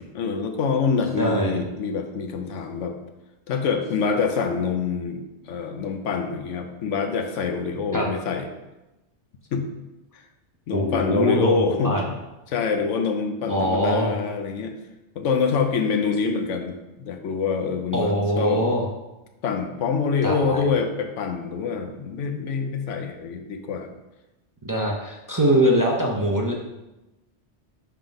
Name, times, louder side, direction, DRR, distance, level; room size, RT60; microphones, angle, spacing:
voice 1, 0.1-3.0 3.5-8.4 9.5-9.7 10.1-10.2 10.7-12.0 12.5-14.8 15.2-18.6 19.4-23.9, left 5 dB, 90° left, 5 dB, 1.0 m, -25 dB
voice 2, 1.2-1.6 7.9-8.1 10.7-11.6 11.8-12.1 13.5-14.1 17.9-18.9 20.2-20.6 24.6-26.5, equal, 25° right, -1 dB, 0.5 m, -22 dB
5.8 x 3.6 x 5.1 m, 1.0 s
omnidirectional pair, 1.2 m